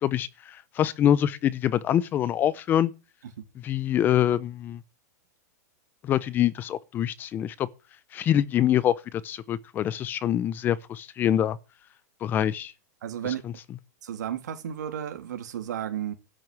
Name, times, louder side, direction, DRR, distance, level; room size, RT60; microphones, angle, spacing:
voice 1, 0.0-2.9 3.6-4.8 6.0-7.7 8.1-11.6 12.2-12.7 13.2-13.5, left 11 dB, 20° left, 0.5 m, -25 dB
voice 2, 13.0-13.4 14.0-16.1, right 10 dB, 80° right, 2.9 m, -33 dB
12.0 x 6.4 x 8.8 m
supercardioid pair, 155°, 9 cm